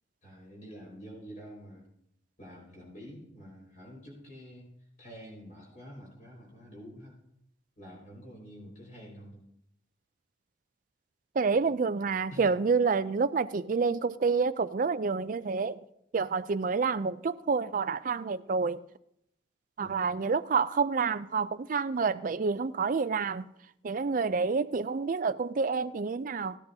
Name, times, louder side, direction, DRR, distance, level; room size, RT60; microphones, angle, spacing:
voice 1, 0.2-1.9 2.4-4.7 5.0-7.2 7.8-9.5 11.5-11.6 12.3-12.5 19.8-20.0, equal, 45° left, 5.0 m, -48 dB
voice 2, 11.4-15.8 16.1-18.8 19.8-23.5 23.8-26.6, right 5 dB, 45° right, 0.4 m, -28 dB
17.5 x 10.5 x 2.8 m
head